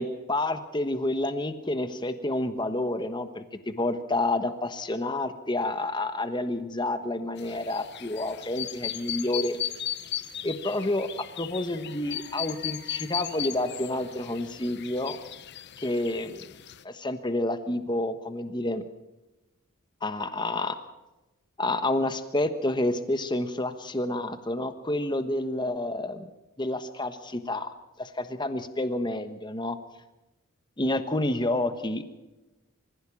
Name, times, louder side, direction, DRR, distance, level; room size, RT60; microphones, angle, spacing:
voice 1, 0.0-9.6 10.4-11.1 11.4-15.2 15.8-16.4 16.8-18.8 20.0-20.8 21.6-26.3 26.6-27.7 28.0-29.8 30.8-32.0, left 1 dB, 20° left, 10 dB, 1.2 m, -29 dB
sound 1, 7.4-16.8, left 11 dB, 50° left, 0.7 m, -37 dB
24.5 x 15.5 x 7.2 m, 1.0 s
head